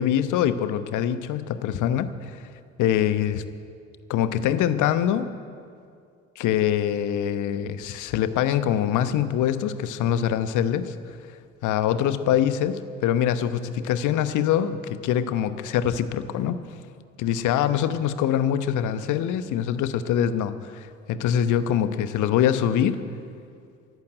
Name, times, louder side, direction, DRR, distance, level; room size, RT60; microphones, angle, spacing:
voice 1, 0.0-2.4 2.8-3.4 4.1-5.3 6.4-10.9 11.6-16.6 17.2-23.0, left 10 dB, 55° left, 12 dB, 1.0 m, -24 dB
15.5 x 11.5 x 7.9 m, 2.3 s
figure-of-eight pair, 55°, 36 cm